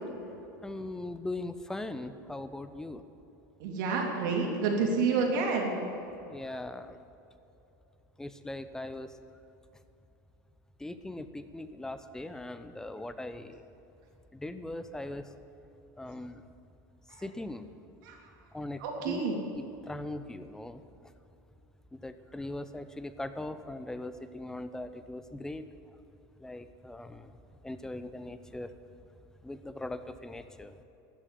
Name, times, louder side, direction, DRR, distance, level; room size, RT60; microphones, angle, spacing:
voice 1, 0.6-3.0 6.3-7.0 8.2-9.1 10.8-13.6 14.3-15.3 16.0-16.4 17.2-17.7 18.5-19.2 19.5-20.8 21.9-25.6 26.4-27.3 27.6-28.7 29.4-30.7, left 2 dB, 5° left, 11 dB, 0.6 m, -40 dB
voice 2, 3.6-5.8 17.1-17.2 18.0-18.2 18.8-19.3, right 4 dB, 75° right, 0 dB, 3.1 m, -29 dB
12.5 x 7.7 x 10.0 m, 2.9 s
supercardioid pair, 125°, 11 cm